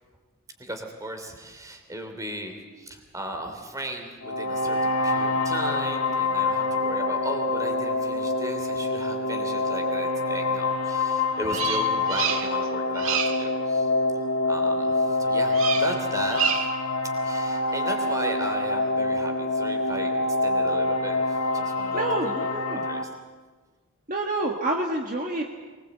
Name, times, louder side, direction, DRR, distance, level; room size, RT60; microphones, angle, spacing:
voice 1, 0.6-13.9 14.4-16.7 17.2-23.1, right 1 dB, 15° right, 4 dB, 2.9 m, -36 dB
sound 1, 4.2-23.0, left 2 dB, 90° left, 2.2 m, -26 dB
Bird vocalization bird call bird song, 11.5-12.7 12.9-13.5 15.5-16.0 16.3-16.8, right 7 dB, 70° right, 1.7 m, -28 dB
voice 2, 21.9-22.8 24.1-25.4, right 2 dB, 40° right, 0 dB, 1.6 m, -28 dB
23.5 x 20.5 x 8.1 m, 1.4 s
head